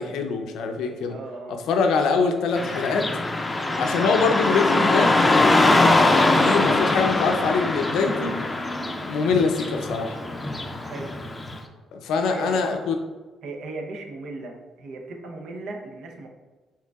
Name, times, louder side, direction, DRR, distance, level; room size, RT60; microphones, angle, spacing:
voice 1, 0.0-1.1 1.5-3.1 3.8-8.4 9.0-10.2 11.9-12.9, left 4 dB, 85° left, 4 dB, 0.5 m, -24 dB
voice 2, 1.1-1.6 3.7-4.0 10.8-11.2 12.2-12.8 13.4-16.3, right 2 dB, 75° right, 2 dB, 0.6 m, -37 dB
Car passing by / Traffic noise roadway noise, 2.6-11.6, left 2 dB, 20° left, 0.4 m, -22 dB
4.6 x 3.6 x 2.3 m, 1.2 s
cardioid pair, 90°, 0 cm